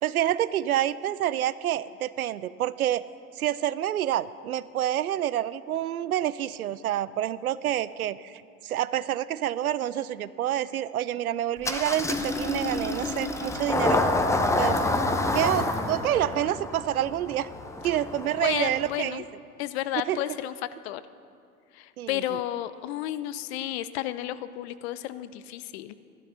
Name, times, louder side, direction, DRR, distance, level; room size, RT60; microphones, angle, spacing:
voice 1, 0.0-3.0 3.4-14.0 14.6-14.8 15.3-17.5 17.8-19.2 20.1-20.2 22.0-22.2, right 12 dB, 75° right, 17 dB, 0.6 m, -28 dB
Engine starting, 11.6-19.0, left 2 dB, 5° left, 0.8 m, -28 dB
voice 2, 18.4-19.2 19.6-20.5 20.8-21.0 21.7-25.9, left 13 dB, 45° left, 14 dB, 0.7 m, -32 dB
14.0 x 12.0 x 5.6 m, 2.4 s
figure-of-eight pair, 90°, 44 cm